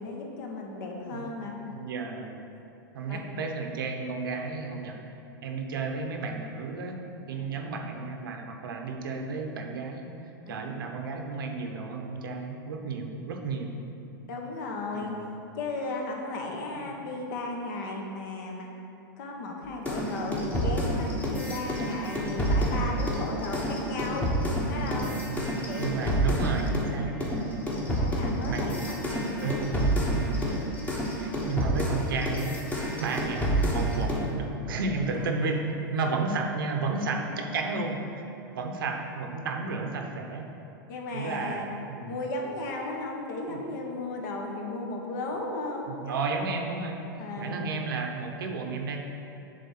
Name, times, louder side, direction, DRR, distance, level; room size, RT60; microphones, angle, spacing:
voice 1, 0.0-1.5 3.1-3.2 7.3-7.6 10.4-10.6 14.3-15.1 15.5-18.7 19.2-24.2 24.7-25.1 25.7-26.1 28.0-29.6 35.1-35.3 37.1-37.4 40.8-41.7 42.1-46.5 47.2-47.6, left 2 dB, 60° left, 0 dB, 1.2 m, -35 dB
voice 2, 1.7-2.5 2.9-5.0 5.4-7.0 7.3-14.0 14.9-15.4 16.7-16.9 20.2-20.3 20.7-21.1 24.8-27.6 28.4-28.7 29.4-30.1 31.2-32.6 33.0-35.6 35.9-40.5 41.1-42.1 43.5-43.6 45.9-47.0 47.4-49.0, right 4 dB, 85° right, 3 dB, 0.9 m, -33 dB
sound 1, 19.8-26.9 27.2-34.3, equal, 15° left, 1.1 m, -28 dB
7.5 x 3.5 x 5.7 m, 2.9 s
supercardioid pair, 135°, 11 cm